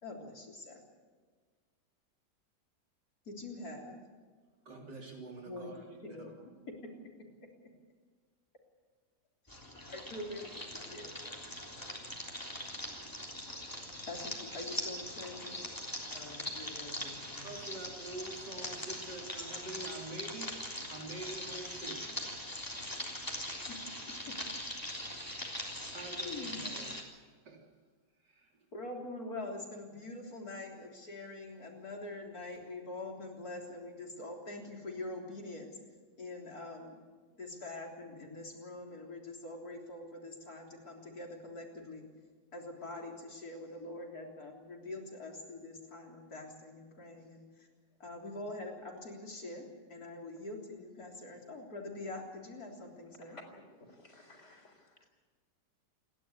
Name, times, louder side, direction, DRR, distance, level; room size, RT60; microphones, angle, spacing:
voice 1, 0.0-0.8 3.3-4.0 5.5-5.7 6.0-6.3 6.7-6.9 9.9-11.4 14.0-15.6 16.1-17.5 23.7-23.8 24.1-24.8 26.2-26.7 28.7-35.8 36.2-37.0 37.4-42.1 42.5-47.7 48.0-53.4, left 2 dB, 60° left, 1 dB, 4.1 m, -44 dB
voice 2, 4.7-6.3 17.4-20.5 20.9-22.2 25.9-27.1 27.5-27.6 28.2-28.5, right 2 dB, 85° right, 0 dB, 4.0 m, -46 dB
sound 1, 9.5-27.0, left 1 dB, 10° left, 3.4 m, -42 dB
voice 3, 53.8-55.1, left 1 dB, 40° left, 4 dB, 4.3 m, -55 dB
28.5 x 11.5 x 9.9 m, 1.5 s
omnidirectional pair, 1.8 m